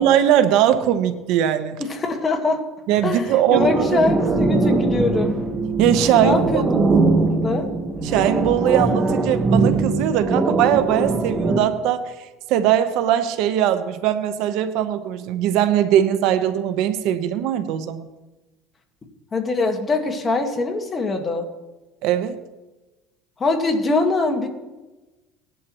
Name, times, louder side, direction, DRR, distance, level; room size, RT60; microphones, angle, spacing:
voice 1, 0.0-1.8 2.9-4.0 5.8-6.3 8.0-18.1 22.0-22.4, right 10 dB, 65° right, 10 dB, 1.0 m, -20 dB
voice 2, 1.8-2.6 3.0-3.2 3.5-5.3 6.2-6.6 7.3-7.7 19.3-21.5 23.4-24.5, left 3 dB, 20° left, 4 dB, 1.7 m, -22 dB
sound 1, 3.5-11.6, right 3 dB, 20° right, 1.4 m, -21 dB
19.0 x 11.0 x 3.1 m, 1.1 s
cardioid pair, 140°, 0 cm